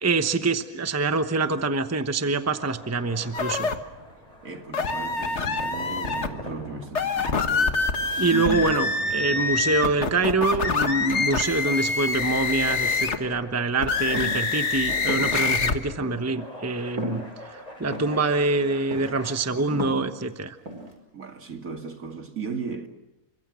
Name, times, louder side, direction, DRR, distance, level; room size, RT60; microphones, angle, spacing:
voice 1, 0.0-3.7 8.2-17.2 17.8-20.6, right 3 dB, 10° right, 0.9 m, -25 dB
sound 1, 2.4-19.3, equal, 25° left, 8.3 m, -43 dB
sound 2, 3.3-3.8 4.7-6.3 6.9-13.3 13.8-15.8, left 4 dB, 50° left, 1.7 m, -25 dB
voice 2, 4.4-7.8 8.3-9.1 19.5-19.9 21.1-22.9, right 5 dB, 65° right, 2.6 m, -36 dB
sound 3, 14.1-14.5 15.1-15.3 16.0-16.2 17.0-17.2 17.9-18.2 18.9-19.3 19.6-20.1 20.7-20.9, right 1 dB, 85° right, 5.4 m, -32 dB
29.5 x 25.0 x 6.3 m
omnidirectional pair, 1.5 m